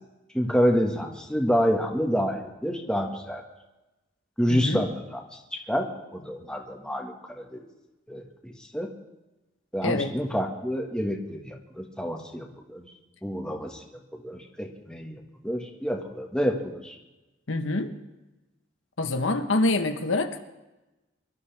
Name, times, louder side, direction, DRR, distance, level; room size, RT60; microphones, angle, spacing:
voice 1, 0.3-3.4 4.4-7.6 8.1-8.9 9.7-12.9 13.2-13.8 14.1-16.9, equal, 5° left, 1 dB, 1.8 m, -28 dB
voice 2, 4.5-4.9 9.8-10.1 17.5-17.9 19.0-20.4, left 2 dB, 85° left, 6 dB, 1.3 m, -26 dB
24.5 x 12.5 x 3.6 m, 1.0 s
head